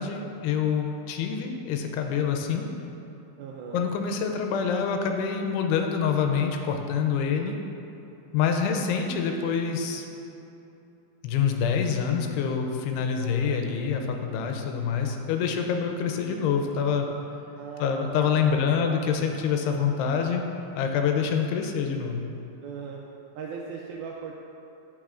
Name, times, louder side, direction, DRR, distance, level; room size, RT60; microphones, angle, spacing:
voice 1, 0.0-2.7 3.7-7.6 8.3-10.1 11.2-17.1 17.8-20.4 20.7-22.2, left 6 dB, 85° left, 4 dB, 2.6 m, -26 dB
voice 2, 3.4-3.8 13.2-13.9 17.6-19.0 22.6-23.0 23.3-24.3, right 6 dB, 85° right, -2 dB, 2.1 m, -39 dB
12.0 x 6.0 x 2.5 m, 2.8 s
omnidirectional pair, 4.7 m